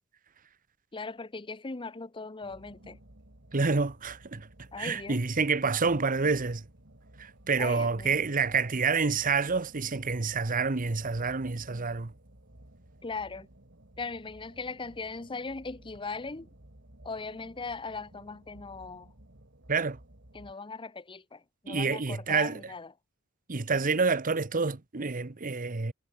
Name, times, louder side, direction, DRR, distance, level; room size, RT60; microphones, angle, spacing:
voice 1, 0.9-3.0 4.7-5.2 7.6-8.2 13.0-13.5 14.0-16.5 17.0-19.1 20.3-22.9, left 4 dB, 25° left, 0.8 m, -39 dB
sound 1, 2.4-20.5, right 1 dB, 55° right, 3.4 m, -55 dB
voice 2, 3.5-4.5 4.8-6.6 7.2-12.1 19.7-20.0 21.7-22.6 23.5-25.9, right 4 dB, 40° right, 0.9 m, -28 dB
head